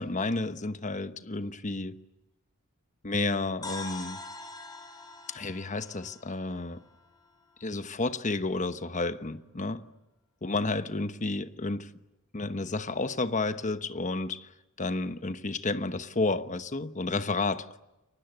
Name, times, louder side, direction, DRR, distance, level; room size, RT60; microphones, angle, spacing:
voice 1, 0.0-2.0 3.0-4.2 5.3-6.8 7.6-9.9 10.4-11.9 12.3-14.5 14.8-17.8, left 3 dB, 35° left, 1.1 m, -31 dB
sound 1, 3.6-7.6, left 3 dB, 15° left, 5.3 m, -44 dB
29.5 x 24.0 x 8.0 m
head